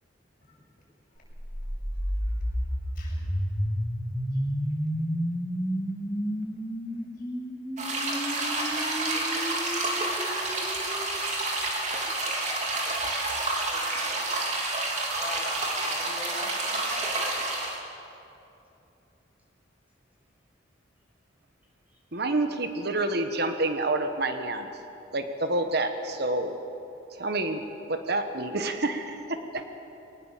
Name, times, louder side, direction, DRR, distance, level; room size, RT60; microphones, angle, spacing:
sound 1, 1.2-11.2, equal, 10° left, 1.9 m, -31 dB
voice 1, 1.9-3.2 4.3-4.8 6.9-7.3 7.6-7.8, left 4 dB, 45° left, -4 dB, 7.3 m, -61 dB
sound 2, 7.8-17.8, right 2 dB, 40° right, 3.3 m, -29 dB
voice 2, 13.7-14.3 15.2-17.4 21.9-22.0, left 1 dB, 10° right, -3 dB, 5.9 m, -41 dB
voice 3, 22.1-24.7 25.1-26.6 27.1-29.6, right 2 dB, 55° right, 7 dB, 1.2 m, -28 dB
23.5 x 19.5 x 7.5 m, 2.8 s
head